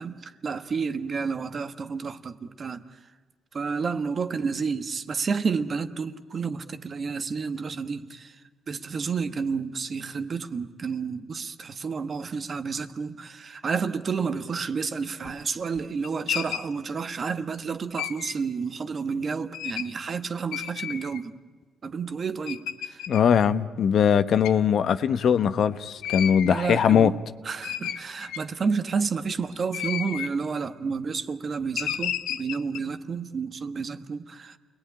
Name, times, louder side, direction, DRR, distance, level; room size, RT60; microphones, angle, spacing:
voice 1, 0.0-2.8 3.5-8.4 8.7-21.4 21.8-23.0 26.4-27.2 27.4-34.6, right 5 dB, 45° right, 1.4 m, -30 dB
sound 1, 15.2-15.4 15.7-16.7 18.0-18.3 19.5-19.9 20.5-21.2 21.8-21.9 22.5-23.2 24.4-24.6 26.0-26.6 27.2-27.3 27.6-28.7 29.6-30.4 31.8-32.8, left 11 dB, 85° left, 1.0 m, -32 dB
voice 2, 23.1-27.1, left 8 dB, 65° left, 1.0 m, -21 dB
29.0 x 20.0 x 10.0 m
cardioid pair, 90°, 0 cm